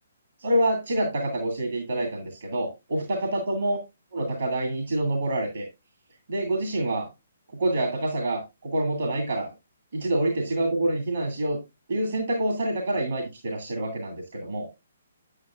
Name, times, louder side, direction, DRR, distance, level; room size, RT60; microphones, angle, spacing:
voice 1, 0.4-3.8 4.1-5.7 6.3-7.1 7.5-9.5 9.9-11.6 11.9-14.7, right 1 dB, 60° right, 2 dB, 2.4 m, -27 dB
8.8 x 8.2 x 2.4 m, 0.23 s
figure-of-eight pair, 135°, 0 cm